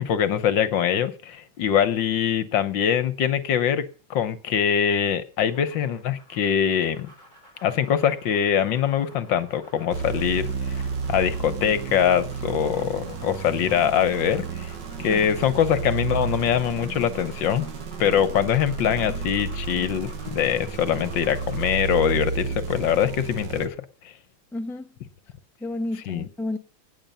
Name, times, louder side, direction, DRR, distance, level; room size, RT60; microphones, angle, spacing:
voice 1, 0.0-7.1 7.6-10.8 11.1-17.7 18.0-23.8 26.1-26.3, left 9 dB, 65° left, 1.6 m, -23 dB
sound 1, 5.4-21.9, right 1 dB, 20° right, 6.1 m, -50 dB
sound 2, 9.9-23.7, right 5 dB, 60° right, 1.8 m, -32 dB
voice 2, 24.5-24.9 25.6-26.6, left 2 dB, ahead, 0.7 m, -31 dB
18.5 x 8.9 x 5.4 m
omnidirectional pair, 2.2 m